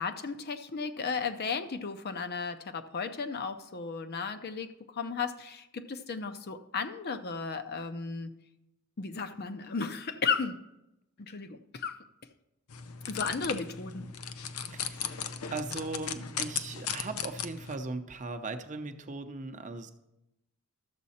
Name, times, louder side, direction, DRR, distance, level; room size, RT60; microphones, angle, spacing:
voice 1, 0.0-8.3 9.0-10.6 11.2-12.0 13.1-14.1, left 5 dB, 50° left, 9 dB, 0.6 m, -34 dB
sound 1, 12.7-17.7, left 7 dB, 85° left, 0.6 m, -37 dB
voice 2, 14.7-19.9, right 3 dB, 35° right, 7 dB, 0.7 m, -39 dB
12.5 x 7.4 x 4.2 m, 0.89 s
head